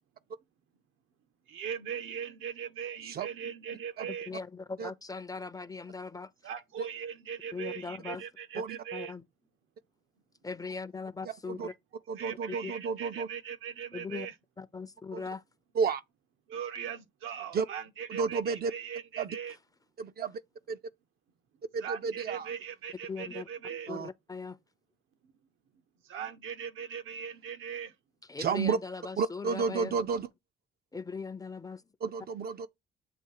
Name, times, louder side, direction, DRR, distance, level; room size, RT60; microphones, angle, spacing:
voice 1, 1.5-4.3 6.4-9.1 12.2-14.3 16.5-19.6 21.8-23.9 26.1-27.9, right 7 dB, 80° right, 0.9 m, -39 dB
voice 2, 4.1-6.3 7.5-8.2 8.9-9.2 10.4-11.7 12.5-12.7 13.9-14.3 14.6-15.4 23.1-23.5 23.9-24.6 28.2-30.0 30.9-31.8, left 4 dB, 20° left, 0.5 m, -40 dB
voice 3, 12.1-13.3 15.1-15.2 15.8-16.0 17.5-17.7 18.1-18.7 19.2-19.4 20.0-20.4 20.7-20.8 21.7-22.5 23.9-24.1 28.4-28.8 29.2-30.3 32.0-32.7, right 5 dB, 50° right, 0.5 m, -31 dB
7.8 x 2.7 x 4.7 m
cardioid pair, 90°, 20 cm